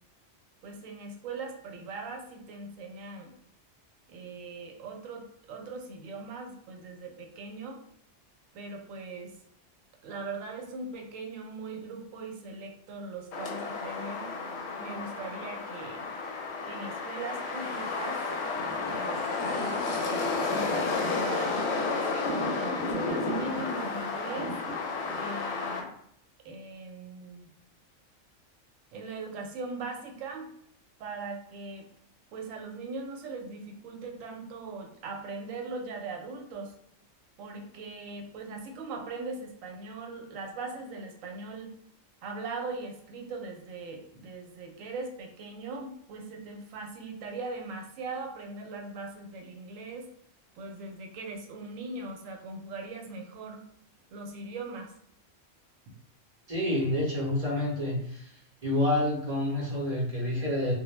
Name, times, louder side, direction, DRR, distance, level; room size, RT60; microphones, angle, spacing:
voice 1, 0.6-3.3 4.1-7.8 8.5-9.3 10.0-14.3 14.8-16.1 16.6-18.2 18.8-19.8 20.5-24.5 25.1-25.9 26.4-27.5 28.9-30.5 31.0-31.9 32.3-36.7 37.4-41.7 42.2-50.1 50.6-53.6 54.1-54.9, right 3 dB, 85° right, 2 dB, 1.0 m, -40 dB
sound 1, 13.3-25.8, left 3 dB, 65° left, 0.8 m, -32 dB
voice 2, 56.5-58.3 58.6-60.7, left 1 dB, 40° right, -4 dB, 0.6 m, -28 dB
2.2 x 2.0 x 3.0 m, 0.68 s
omnidirectional pair, 1.3 m